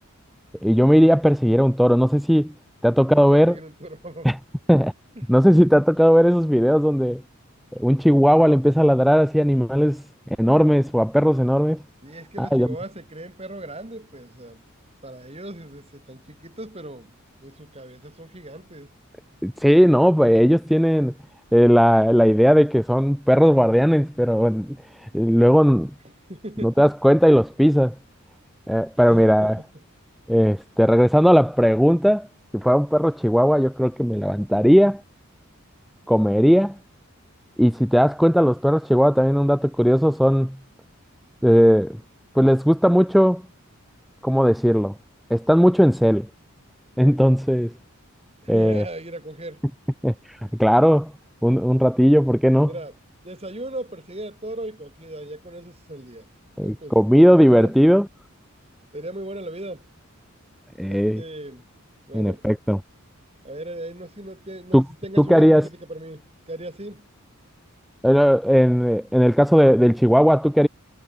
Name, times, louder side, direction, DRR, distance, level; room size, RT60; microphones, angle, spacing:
voice 1, 0.6-2.5 2.8-3.5 4.2-4.4 4.7-4.9 5.3-7.2 7.7-10.0 10.4-11.8 12.4-12.7 19.4-21.1 21.5-25.9 26.6-27.9 28.7-29.6 30.3-32.3 32.5-35.0 36.1-36.8 37.6-40.6 41.4-42.0 42.3-43.4 44.2-44.9 45.3-46.3 47.0-47.7 48.5-48.8 50.0-51.1 51.4-52.7 56.6-58.1 60.8-61.2 62.1-62.8 64.7-64.8 65.2-65.7 68.0-70.7, equal, ahead, 0.7 m, -17 dB
voice 2, 3.2-4.3 12.0-14.6 15.0-17.1 17.4-18.9 26.3-26.9 29.1-29.5 48.4-49.6 52.7-52.9 53.2-56.3 56.6-57.7 58.9-59.9 60.9-61.6 62.1-62.4 63.4-67.1, right 1 dB, 30° right, 6.9 m, -37 dB
head